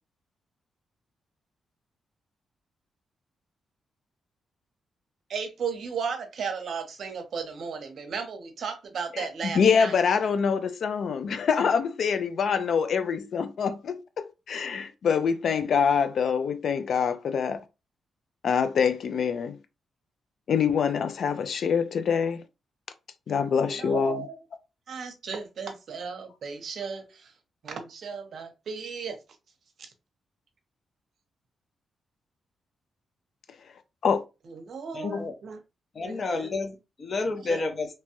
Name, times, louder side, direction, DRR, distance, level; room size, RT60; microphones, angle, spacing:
voice 1, 5.3-9.9 23.6-24.3 24.9-27.3 27.6-29.2 34.5-35.6 36.0-36.5 37.5-37.6, right 6 dB, 60° right, 0.7 m, -35 dB
voice 2, 9.1-17.6 18.4-19.6 20.5-22.4 23.3-24.2 34.0-34.2 35.0-35.3, left 6 dB, 60° left, 0.4 m, -25 dB
voice 3, 34.9-35.3 35.9-37.9, left 3 dB, 40° left, 0.7 m, -30 dB
2.9 x 2.2 x 2.9 m
cardioid pair, 125°, 0 cm